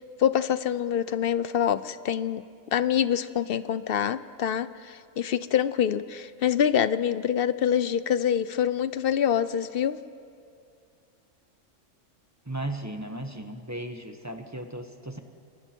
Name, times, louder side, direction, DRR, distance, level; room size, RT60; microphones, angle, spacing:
voice 1, 0.0-2.4 2.7-10.0, left 9 dB, 55° left, 14 dB, 0.7 m, -26 dB
voice 2, 12.5-15.2, right 1 dB, 15° right, 5 dB, 1.2 m, -36 dB
29.5 x 23.0 x 4.5 m, 2.4 s
omnidirectional pair, 1.4 m